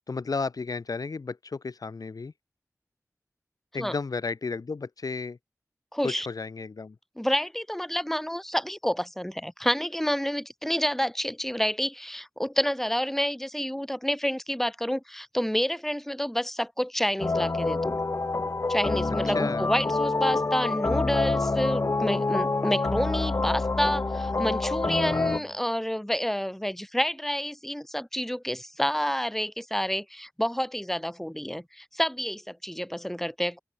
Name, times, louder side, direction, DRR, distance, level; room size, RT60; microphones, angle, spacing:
voice 1, 0.1-2.3 3.7-5.4 6.0-7.0 19.3-19.7 25.1-25.5, left 4 dB, 90° left, 1.4 m, -33 dB
voice 2, 5.9-6.3 7.2-18.0 18.7-33.6, equal, 5° left, 1.6 m, -29 dB
sound 1, 17.2-25.4, left 3 dB, 50° left, 0.7 m, -27 dB
open air
wide cardioid pair, 55°, 6 cm